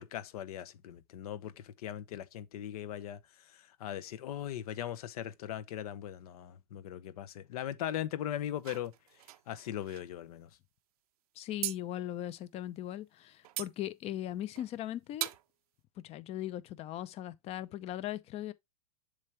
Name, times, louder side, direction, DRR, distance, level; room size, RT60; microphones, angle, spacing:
voice 1, 0.0-3.2 3.5-8.9 9.5-10.5, left 11 dB, 65° left, 0.9 m, -39 dB
sound 1, 8.6-10.0 11.6-11.8 13.4-13.7 14.5-14.7 15.2-15.4, right 15 dB, 70° right, 0.6 m, -39 dB
voice 2, 11.4-15.3 16.0-18.5, left 12 dB, 30° left, 0.6 m, -39 dB
7.3 x 3.4 x 4.3 m
hypercardioid pair, 120°, 20 cm